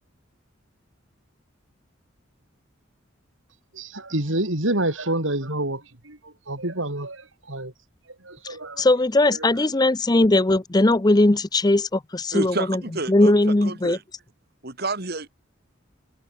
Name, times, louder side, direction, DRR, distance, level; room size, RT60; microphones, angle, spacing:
voice 1, 3.7-6.2 6.5-7.2 7.5-7.7 8.2-8.9, right 1 dB, 75° right, 6.3 m, -27 dB
voice 2, 8.8-12.8 13.1-14.0, left 2 dB, 20° left, 0.6 m, -19 dB
voice 3, 12.3-13.3 13.6-14.0 14.6-15.3, right 2 dB, 50° right, 2.7 m, -29 dB
head